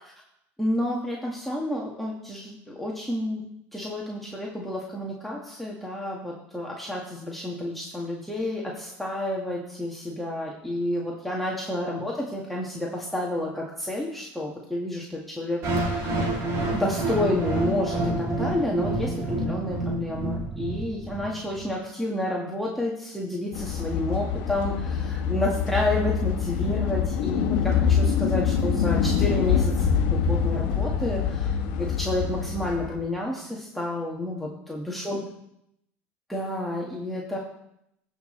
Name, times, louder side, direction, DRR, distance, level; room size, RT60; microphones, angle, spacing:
voice 1, 0.6-3.4 3.7-16.1 16.7-35.2 36.3-37.4, left 1 dB, ahead, -4 dB, 1.8 m, -30 dB
sound 1, 15.6-21.6, right 2 dB, 55° right, 2.7 m, -28 dB
sound 2, 23.5-33.0, left 7 dB, 75° left, 1.2 m, -25 dB
15.5 x 6.0 x 3.3 m, 0.79 s
hypercardioid pair, 85°, 7 cm